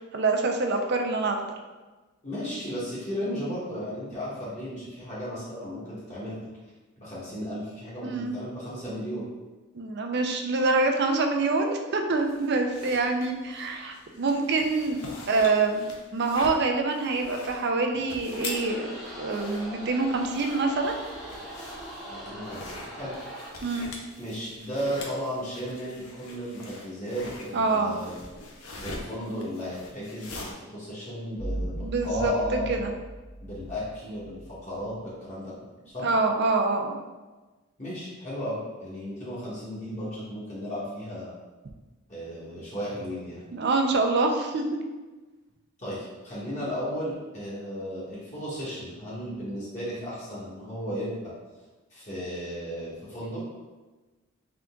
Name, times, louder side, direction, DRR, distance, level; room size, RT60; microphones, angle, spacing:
voice 1, 0.1-1.4 8.0-8.4 9.7-15.0 15.3-18.9 19.2-20.9 23.6-23.9 27.5-27.9 31.8-32.3 32.7-32.9 36.0-37.0 43.5-44.8, right 3 dB, 55° right, 4 dB, 0.5 m, -25 dB
voice 2, 2.2-6.5 7.0-9.3 22.1-23.1 24.2-28.1 28.7-32.7 33.4-36.0 37.8-41.3 42.1-43.4 45.8-51.3 51.9-53.4, equal, 35° left, -9 dB, 1.3 m, -35 dB
sound 1, 12.2-30.5, left 2 dB, 80° left, 0.7 m, -44 dB
sound 2, 18.5-23.5, right 1 dB, ahead, 0.8 m, -40 dB
sound 3, 31.4-34.9, right 1 dB, 20° left, 0.4 m, -37 dB
3.8 x 3.4 x 3.6 m, 1.2 s
head